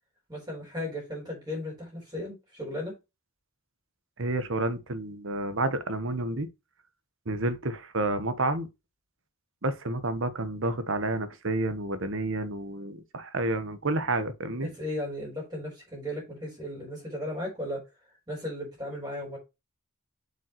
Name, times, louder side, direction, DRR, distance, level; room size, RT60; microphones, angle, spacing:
voice 1, 0.3-2.9 14.5-17.8 18.3-19.4, left 1 dB, 20° right, 4.3 m, -36 dB
voice 2, 4.2-6.5 7.3-8.7 9.6-14.7, right 2 dB, 60° right, 1.0 m, -30 dB
7.5 x 5.4 x 3.0 m
head